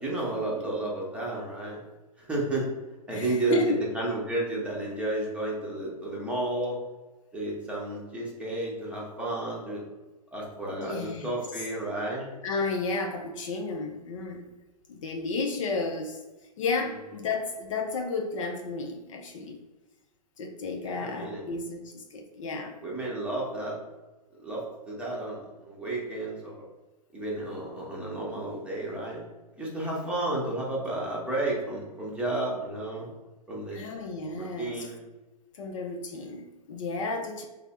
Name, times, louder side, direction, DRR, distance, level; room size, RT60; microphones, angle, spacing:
voice 1, 0.0-1.8 2.2-2.7 3.1-6.8 7.3-9.8 10.3-12.3 16.8-16.9 20.8-21.4 22.8-23.8 24.4-26.7 27.1-29.2 29.6-33.1 33.5-33.8 34.4-35.0, right 2 dB, 5° right, -5 dB, 0.9 m, -32 dB
voice 2, 3.1-3.8 10.8-11.3 12.4-14.5 14.9-16.2 16.6-19.6 20.4-22.8 33.7-34.9 35.5-37.4, left 3 dB, 50° left, 3 dB, 0.5 m, -32 dB
3.2 x 2.0 x 4.2 m, 1.2 s
figure-of-eight pair, 115°, 21 cm